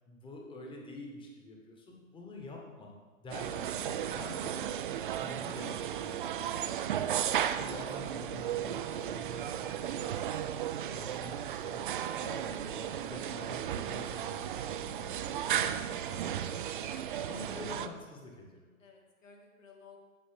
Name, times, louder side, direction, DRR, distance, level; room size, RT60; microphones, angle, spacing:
voice 1, 0.1-2.9 3.2-4.6 5.1-10.5 10.8-16.8 17.3-18.0 18.2-18.6, left 2 dB, 10° left, 0 dB, 1.4 m, -48 dB
sound 1, 3.3-17.9, right 10 dB, 40° right, 0.4 m, -35 dB
voice 2, 17.1-17.8 18.8-20.0, left 5 dB, 70° left, 0 dB, 2.2 m, -53 dB
14.0 x 4.8 x 3.5 m, 1.4 s
figure-of-eight pair, 110°, 40 cm